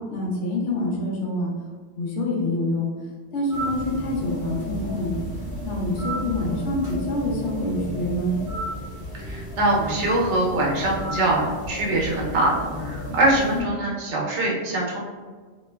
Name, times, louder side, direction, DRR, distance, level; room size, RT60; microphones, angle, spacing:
voice 1, 0.0-1.5 1.9-2.9 3.3-5.2 5.6-8.4 13.5-13.7, left 1 dB, 85° left, -3 dB, 1.0 m, -26 dB
sound 1, 3.5-13.6, equal, 50° right, 0.9 m, -33 dB
voice 2, 9.1-15.0, right 1 dB, 80° right, -3 dB, 1.0 m, -23 dB
3.0 x 2.2 x 2.2 m, 1.4 s
omnidirectional pair, 1.2 m